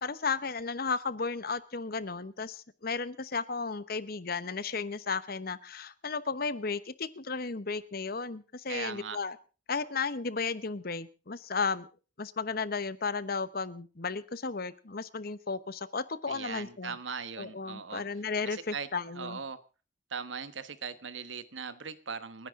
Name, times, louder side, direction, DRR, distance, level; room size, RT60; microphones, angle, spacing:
voice 1, 0.0-9.4 9.7-11.9 12.2-17.0 17.4-19.4, left 4 dB, 55° left, 15 dB, 1.0 m, -34 dB
voice 2, 8.7-9.2 16.3-18.0 18.5-18.9 19.1-19.6 20.1-22.5, right 5 dB, 90° right, 13 dB, 1.4 m, -39 dB
29.0 x 10.5 x 3.7 m, 0.35 s
head